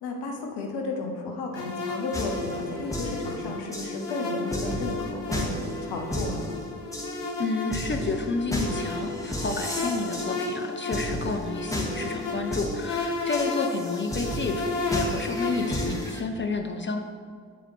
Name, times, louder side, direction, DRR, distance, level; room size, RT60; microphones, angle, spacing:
voice 1, 0.0-6.5 15.4-15.8, left 3 dB, 55° left, 2 dB, 1.1 m, -33 dB
sound 1, 1.5-15.8, left 3 dB, 90° left, 0.8 m, -34 dB
sound 2, 2.1-16.2, equal, 5° left, 1.7 m, -33 dB
voice 2, 7.4-17.0, left 3 dB, 25° left, 4 dB, 0.6 m, -31 dB
12.0 x 4.9 x 3.2 m, 2.1 s
figure-of-eight pair, 45°, 47 cm